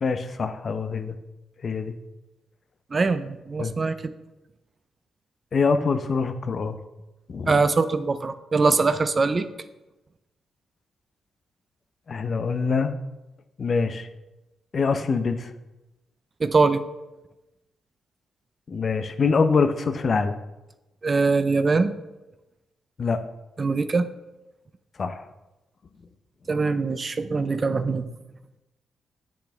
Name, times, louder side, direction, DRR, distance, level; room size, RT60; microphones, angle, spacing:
voice 1, 0.0-1.1 1.6-1.9 3.6-3.7 5.5-6.8 7.3-7.6 12.1-13.0 13.6-14.1 14.7-15.5 18.7-20.4 23.0-23.2 25.0-25.2, left 4 dB, 55° left, 9 dB, 0.6 m, -24 dB
voice 2, 2.9-4.1 7.5-9.5 16.4-16.8 21.0-21.9 23.6-24.1 26.5-28.0, right 4 dB, 40° right, 11 dB, 0.6 m, -22 dB
8.1 x 6.2 x 3.4 m, 1.0 s
supercardioid pair, 45°, 0 cm